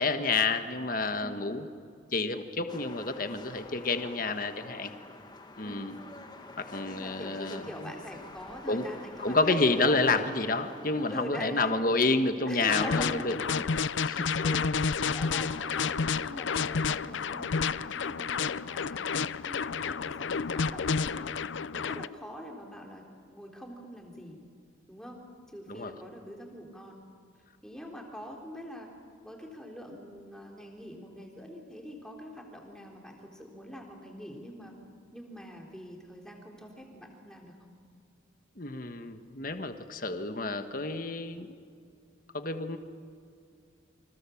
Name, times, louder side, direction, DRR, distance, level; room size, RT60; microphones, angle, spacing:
voice 1, 0.0-1.6 2.1-4.9 5.6-5.9 6.6-7.9 8.7-8.8 9.2-13.6 14.0-14.3 25.7-25.9 38.6-41.5 42.3-42.8, left 3 dB, 45° left, 7 dB, 1.5 m, -29 dB
sound 1, 2.7-11.3, left 2 dB, 20° left, 1.8 m, -48 dB
voice 2, 6.9-10.0 11.1-11.8 12.5-13.4 14.1-21.3 21.7-23.0 23.3-24.4 24.9-25.2 25.5-27.0 27.6-28.9 29.2-34.7 35.1-37.5, equal, 5° left, 0 dB, 3.8 m, -44 dB
sound 2, 12.7-22.1, left 5 dB, 75° left, 0.6 m, -30 dB
29.0 x 26.0 x 7.2 m, 2.4 s
head